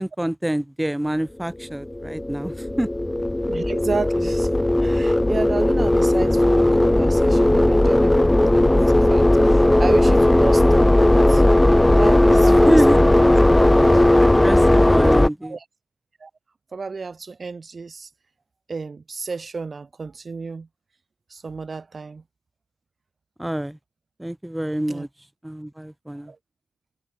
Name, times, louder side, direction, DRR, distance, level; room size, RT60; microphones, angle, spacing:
voice 1, 0.0-2.9 12.5-13.0 14.1-15.6 23.4-23.8 24.2-25.1 25.4-26.3, right 1 dB, 10° right, 1.2 m, -26 dB
sound 1, 1.6-15.3, left 1 dB, 15° left, 0.4 m, -16 dB
voice 2, 3.5-11.4 12.0-12.8 13.0-13.2 13.9-14.0 15.4-15.6 16.2-16.3 16.7-18.1 18.7-20.7 21.3-22.2 24.9-25.1 26.3-26.4, right 4 dB, 45° right, 0.7 m, -32 dB
supercardioid pair, 50°, 0 cm